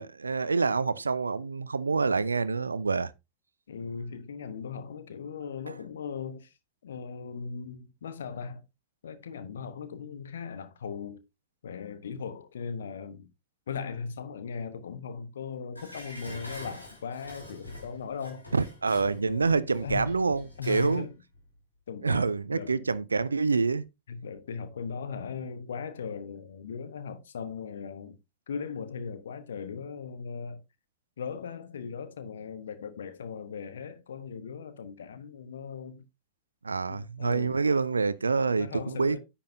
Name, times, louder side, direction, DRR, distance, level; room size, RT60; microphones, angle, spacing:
voice 1, 0.0-3.1 18.5-21.1 22.0-23.8 36.6-39.2, right 4 dB, 75° right, 0.6 m, -27 dB
voice 2, 3.7-6.6 6.8-8.6 9.0-11.2 11.6-13.3 13.7-18.4 19.1-20.2 20.6-21.1 21.9-22.9 24.1-28.2 28.5-30.6 31.2-36.0 36.9-37.6 38.6-39.2, left 6 dB, 65° left, 1.0 m, -38 dB
Dishes pots and pans, 15.7-21.0 21.4-21.5, left 1 dB, 85° left, 6.0 m, -45 dB
10.5 x 8.5 x 2.7 m
figure-of-eight pair, 90°, 0 cm